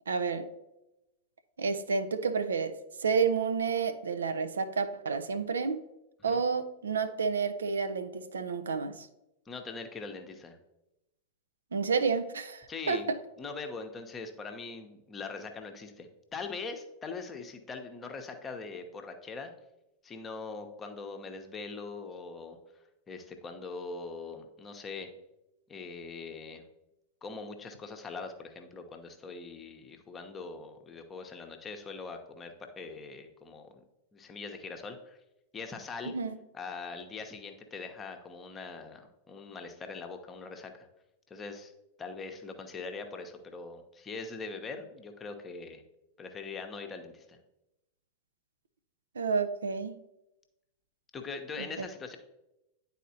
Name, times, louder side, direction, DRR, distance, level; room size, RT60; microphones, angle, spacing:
voice 1, 0.1-0.5 1.6-5.8 6.2-9.1 11.7-13.0 36.1-36.4 49.2-50.0 51.6-51.9, right 5 dB, 70° right, 0.5 m, -30 dB
voice 2, 9.5-10.6 12.7-13.0 13.4-19.5 20.0-22.6 23.1-25.1 25.7-26.6 27.2-33.8 34.1-35.2 35.5-36.1 36.5-40.9 41.3-41.7 42.0-45.8 46.2-47.4 51.1-52.2, left 4 dB, 20° left, 0.8 m, -42 dB
10.0 x 4.2 x 2.8 m
figure-of-eight pair, 90°, 0 cm